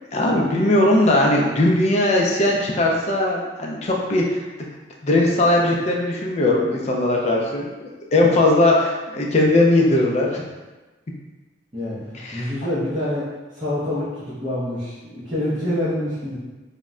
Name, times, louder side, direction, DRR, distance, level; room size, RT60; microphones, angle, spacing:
voice 1, 0.1-4.4 5.0-10.4 12.2-12.4, left 1 dB, 35° left, -1 dB, 0.3 m, -19 dB
voice 2, 11.7-16.4, left 1 dB, 25° right, -13 dB, 0.6 m, -26 dB
2.1 x 2.1 x 3.6 m, 1.2 s
head